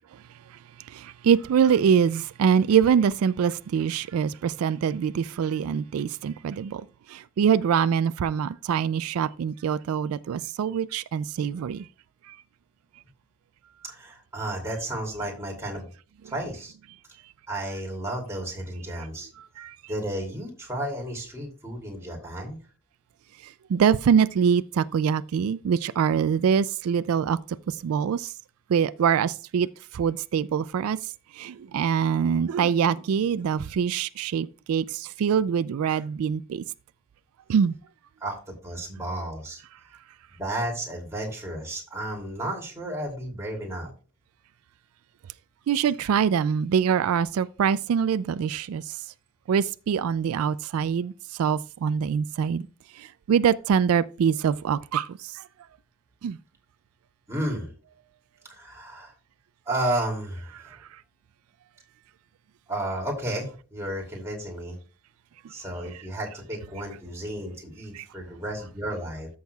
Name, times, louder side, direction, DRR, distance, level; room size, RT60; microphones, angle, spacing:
voice 1, 0.9-11.9 12.3-12.4 19.6-19.8 23.7-27.4 27.7-28.3 28.7-29.7 29.9-31.0 31.4-36.6 37.5-37.7 45.7-48.8 49.5-52.7 53.0-55.4 56.2-56.4 67.9-68.0, right 7 dB, 85° right, 0.3 m, -24 dB
voice 2, 13.8-15.9 16.2-16.7 17.5-19.3 19.9-22.6 38.2-38.4 38.6-39.6 40.3-43.9 57.3-57.7 58.5-59.1 59.7-60.8 62.7-64.8 65.5-69.3, right 1 dB, 15° right, 2.7 m, -32 dB
13.5 x 6.3 x 2.3 m
head